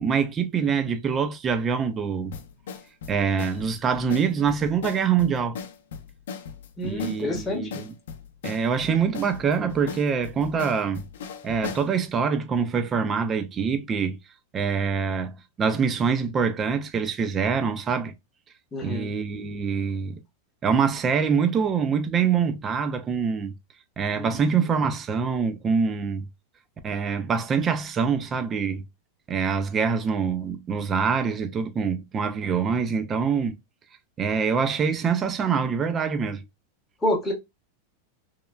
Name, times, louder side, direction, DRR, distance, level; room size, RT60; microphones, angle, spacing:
voice 1, 0.0-2.3 3.1-5.6 6.8-7.9 8.4-11.1 11.4-14.2 14.5-15.3 15.6-18.1 18.8-20.1 20.6-23.5 24.0-26.3 26.8-28.8 29.3-33.5 34.2-36.4, right 6 dB, 20° right, 0.3 m, -25 dB
sound 1, 2.3-11.9, left 6 dB, 80° left, 0.5 m, -38 dB
voice 2, 6.8-7.8 18.7-19.2 24.2-24.3 37.0-37.3, left 1 dB, 10° left, 0.8 m, -28 dB
3.0 x 2.1 x 2.2 m
supercardioid pair, 160°, 0 cm